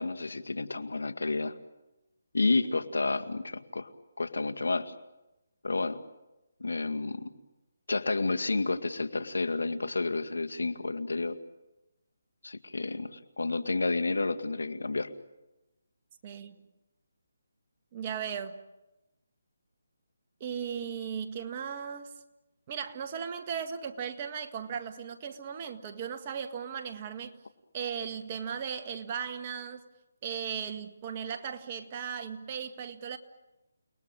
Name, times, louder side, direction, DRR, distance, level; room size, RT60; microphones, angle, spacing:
voice 1, 0.0-1.5 2.3-3.9 4.2-4.9 5.6-6.0 6.6-7.3 7.9-11.4 12.4-15.1, left 3 dB, 85° left, 11 dB, 1.9 m, -30 dB
voice 2, 16.2-16.7 17.9-18.6 20.4-22.1 22.7-27.4 27.7-29.8 30.2-33.2, right 7 dB, 30° right, 6 dB, 1.7 m, -37 dB
30.0 x 19.5 x 8.9 m, 1.0 s
hypercardioid pair, 160°, 0 cm